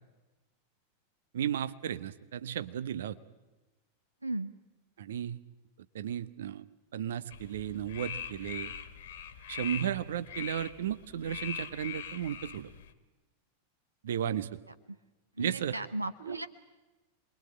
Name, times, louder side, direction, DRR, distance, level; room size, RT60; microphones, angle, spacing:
voice 1, 1.3-3.2 5.0-5.4 5.9-6.7 6.9-8.7 9.5-12.7 14.0-14.5 15.4-15.8 16.2-16.5, right 10 dB, 60° right, 14 dB, 1.0 m, -34 dB
voice 2, 4.2-4.5 15.4-16.5, right 2 dB, 85° right, 13 dB, 0.8 m, -35 dB
sound 1, 7.3-12.9, left 8 dB, 60° left, 1.9 m, -42 dB
27.5 x 21.5 x 8.6 m, 1.1 s
figure-of-eight pair, 90°, 0 cm